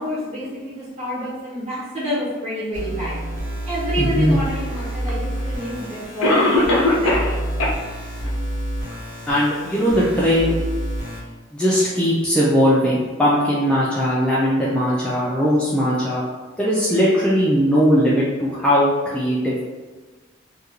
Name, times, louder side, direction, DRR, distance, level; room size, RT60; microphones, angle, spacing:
voice 1, 0.0-3.2 3.7-7.2, equal, 35° right, -8 dB, 1.0 m, -28 dB
sound 1, 2.7-11.2, right 1 dB, 60° right, 0.7 m, -28 dB
voice 2, 4.0-4.4 9.3-10.6 11.5-16.2 16.6-19.6, equal, 5° left, -8 dB, 0.3 m, -19 dB
Cough, 5.1-5.2 6.2-7.3 7.6-7.7 8.3-8.4 8.9-9.0, left 2 dB, 85° left, 0.6 m, -18 dB
2.4 x 2.2 x 2.9 m, 1.3 s
head